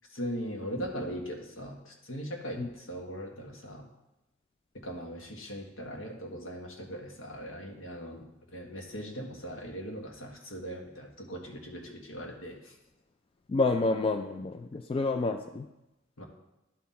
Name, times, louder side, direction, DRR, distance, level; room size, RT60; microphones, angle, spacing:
voice 1, 0.1-3.9 4.8-8.2 8.5-12.6 16.2-16.3, equal, 75° left, 1 dB, 1.5 m, -39 dB
voice 2, 13.5-15.6, left 3 dB, 30° left, 6 dB, 0.3 m, -29 dB
11.0 x 4.0 x 4.2 m, 0.95 s
head